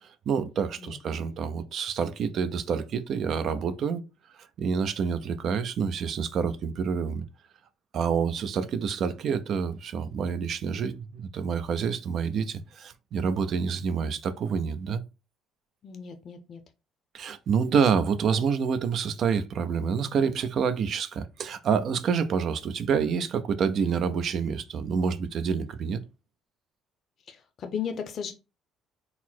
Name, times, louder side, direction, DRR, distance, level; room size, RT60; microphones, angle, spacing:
voice 1, 0.0-4.0 4.6-7.2 7.9-15.0 17.1-26.0, right 6 dB, 55° right, 0.5 m, -27 dB
voice 2, 15.8-16.6 27.3-28.3, left 7 dB, 50° left, 0.6 m, -35 dB
4.0 x 2.0 x 4.3 m
supercardioid pair, 85°, 0 cm